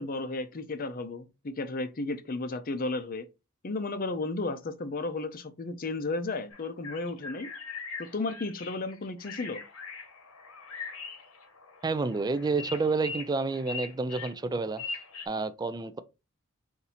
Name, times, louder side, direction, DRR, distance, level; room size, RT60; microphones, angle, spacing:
voice 1, 0.0-3.3 3.6-7.5 8.0-9.6, left 3 dB, 40° left, 0.5 m, -33 dB
sound 1, 6.5-15.3, left 4 dB, 75° left, 1.0 m, -41 dB
voice 2, 11.8-14.8 15.3-16.0, right 3 dB, 20° right, 0.3 m, -29 dB
4.2 x 2.7 x 4.1 m
head